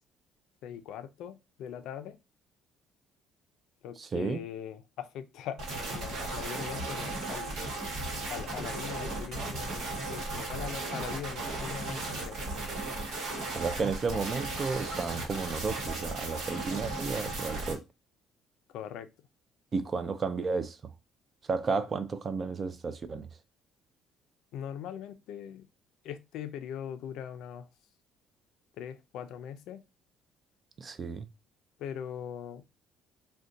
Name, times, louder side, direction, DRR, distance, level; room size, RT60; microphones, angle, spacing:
voice 1, 0.6-2.2 3.8-7.6 8.3-12.4 18.7-19.1 24.5-25.6 26.0-27.7 28.8-29.8 31.8-32.6, left 9 dB, 70° left, 0.4 m, -41 dB
voice 2, 4.0-4.4 13.5-17.8 19.7-20.8 21.5-23.3 30.8-31.3, right 4 dB, 30° right, 0.3 m, -32 dB
sound 1, 5.6-17.7, right 2 dB, 60° right, 1.1 m, -36 dB
2.6 x 2.2 x 3.7 m
cardioid pair, 145°, 0 cm